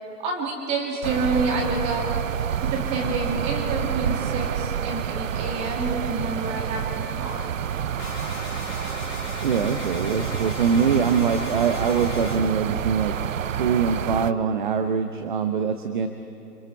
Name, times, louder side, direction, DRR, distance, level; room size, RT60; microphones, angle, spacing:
voice 1, 0.2-2.1 2.6-7.6, right 3 dB, 15° right, 0 dB, 2.3 m, -28 dB
sound 1, 1.0-14.3, right 9 dB, 60° right, 0.7 m, -28 dB
sound 2, 8.0-12.4, left 5 dB, 30° left, 2.9 m, -38 dB
voice 2, 9.4-13.2 13.6-16.1, right 6 dB, 30° right, 8 dB, 0.9 m, -23 dB
28.0 x 25.5 x 4.6 m, 2.8 s
hypercardioid pair, 155°, 45 cm